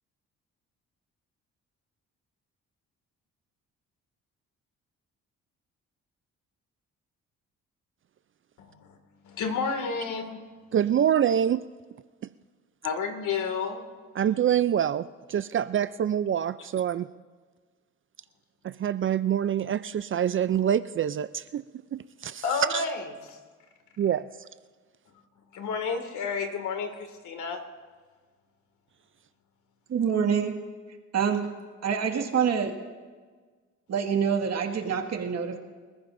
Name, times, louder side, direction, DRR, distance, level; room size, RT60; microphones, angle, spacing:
voice 1, 8.6-9.0 9.2-10.4 12.8-13.9 22.4-23.4 25.5-27.6, left 5 dB, 75° left, 5 dB, 2.2 m, -31 dB
voice 2, 10.7-11.6 14.2-17.1 18.6-21.6 21.9-22.4 22.7-22.8 24.0-24.2, right 9 dB, 45° right, 14 dB, 0.4 m, -26 dB
voice 3, 29.9-30.5 31.1-31.5 31.8-32.7 33.9-35.6, right 7 dB, 60° right, 3 dB, 1.9 m, -26 dB
26.5 x 14.5 x 2.6 m, 1.4 s
cardioid pair, 90°, 30 cm